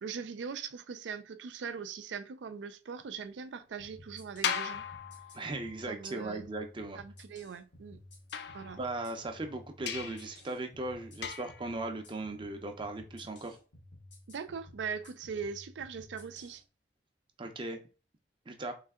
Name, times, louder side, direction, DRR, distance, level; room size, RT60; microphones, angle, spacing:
voice 1, 0.0-4.8 5.9-6.5 6.9-8.0 8.5-8.8 14.3-16.6, right 6 dB, 85° right, 0.4 m, -41 dB
sound 1, 3.8-16.6, left 1 dB, 90° left, 1.4 m, -54 dB
sound 2, 4.4-5.8 8.3-9.2 9.9-10.3 11.2-11.7, left 7 dB, 65° left, 0.4 m, -37 dB
voice 2, 5.3-7.0 8.8-13.6 17.4-17.8 18.5-18.7, right 2 dB, 30° right, 0.5 m, -38 dB
3.2 x 2.7 x 3.6 m
head